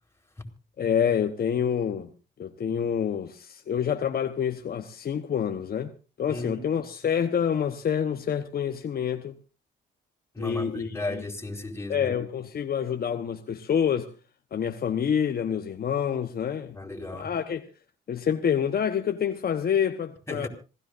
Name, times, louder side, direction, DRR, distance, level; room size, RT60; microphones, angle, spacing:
voice 1, 0.8-2.1 2.4-5.9 6.2-9.3 10.4-11.2 11.9-14.1 14.5-16.8 17.1-17.7 18.1-20.5, left 8 dB, 50° left, 1.2 m, -27 dB
voice 2, 6.3-6.7 10.3-12.2 16.7-17.3 20.3-20.5, left 2 dB, 15° left, 4.5 m, -35 dB
26.5 x 16.0 x 2.6 m
cardioid pair, 90°, 20 cm